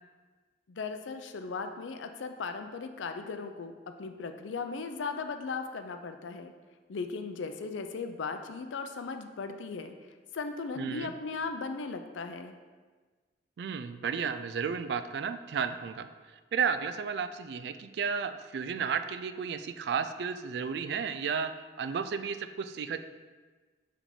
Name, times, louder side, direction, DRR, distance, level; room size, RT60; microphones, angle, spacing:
voice 1, 0.7-6.5 6.9-9.9 10.3-12.5, left 4 dB, 90° left, 7 dB, 0.5 m, -37 dB
voice 2, 10.8-11.1 13.6-16.1 16.5-21.5 21.8-23.0, right 6 dB, 60° right, 10 dB, 0.3 m, -33 dB
4.9 x 3.4 x 5.5 m, 1.4 s
head